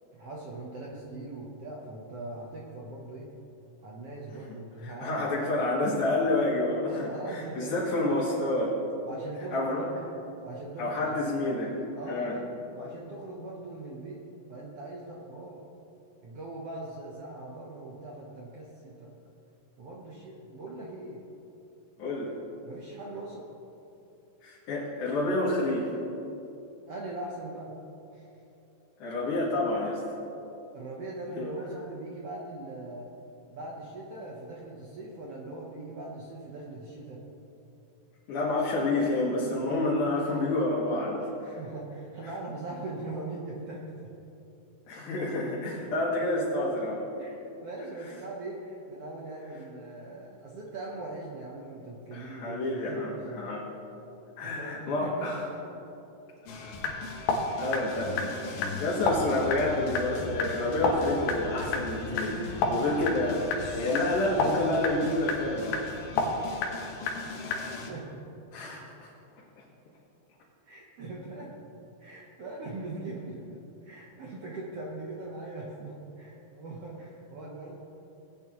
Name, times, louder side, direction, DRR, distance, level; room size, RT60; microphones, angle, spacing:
voice 1, 0.1-3.3 3.8-5.2 7.0-7.8 9.0-10.1 10.4-11.2 11.9-14.2 14.5-15.6 16.2-19.1 19.8-21.2 22.6-23.5 26.9-27.7 28.1-28.3 30.7-33.1 33.5-37.2 39.4-39.6 41.4-44.1 47.2-53.5 54.4-55.3 62.3-62.9 67.5-68.2 70.6-71.6 72.0-77.8, right 2 dB, 70° right, -3 dB, 1.4 m, -41 dB
voice 2, 4.8-8.7 9.5-9.8 10.8-11.7 12.1-12.3 22.0-22.3 24.4-25.9 29.0-30.0 31.3-31.5 38.3-41.3 44.9-47.1 52.1-53.1 53.4-53.6 54.4-55.4 56.5-56.7 57.6-58.2 58.6-62.4 62.7-65.8 68.5-69.1, left 2 dB, 65° left, -8 dB, 3.0 m, -29 dB
sound 1, 56.5-67.9, left 3 dB, 90° left, 3.0 m, -32 dB
18.0 x 9.0 x 3.0 m, 2.9 s
omnidirectional pair, 4.1 m